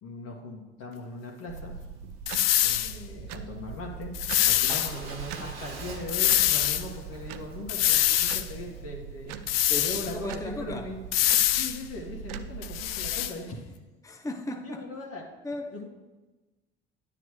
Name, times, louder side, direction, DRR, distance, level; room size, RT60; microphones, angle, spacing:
voice 1, 0.0-1.7 2.6-4.1 4.4-11.0 11.6-13.7 14.6-15.3 15.7-15.9, left 2 dB, 55° left, 1.9 m, -39 dB
sound 1, 1.5-13.3, right 7 dB, 65° right, 0.6 m, -41 dB
sound 2, 2.3-2.9 4.1-4.9 6.1-6.8 7.7-8.5 9.5-10.1 11.1-11.8 12.6-13.3, left 13 dB, 80° left, 0.5 m, -24 dB
Motorcycle / Engine starting / Idling, 4.7-8.8, right 4 dB, 90° right, 1.1 m, -45 dB
voice 2, 9.7-10.9 14.0-14.9 15.4-15.9, left 2 dB, 10° left, 0.8 m, -37 dB
10.0 x 9.8 x 3.3 m
figure-of-eight pair, 55°, 29 cm